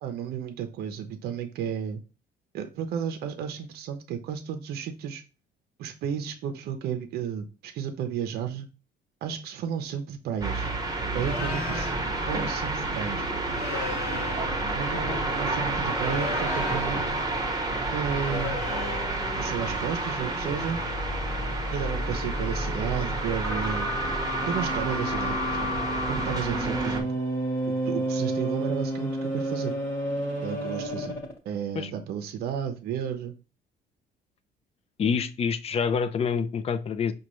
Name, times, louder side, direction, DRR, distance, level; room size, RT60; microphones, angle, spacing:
voice 1, 0.0-2.0 2.5-5.2 5.8-8.7 9.2-10.7 11.1-11.9 12.3-13.3 14.7-17.2 17.9-18.6 19.4-20.8 21.7-23.9 24.4-25.7 26.1-27.2 27.9-29.7 30.4-31.1 31.4-33.4, right 8 dB, 70° right, 0.6 m, -33 dB
sound 1, 10.4-27.0, right 2 dB, 20° right, 0.9 m, -30 dB
sound 2, 11.1-12.0 13.4-14.5 15.9-17.1 18.1-19.1, left 6 dB, 75° left, 0.7 m, -37 dB
sound 3, 18.7-31.4, right 1 dB, 15° left, 1.1 m, -32 dB
voice 2, 35.0-37.1, left 6 dB, 35° left, 0.4 m, -27 dB
5.0 x 2.3 x 3.0 m
cardioid pair, 110°, 17 cm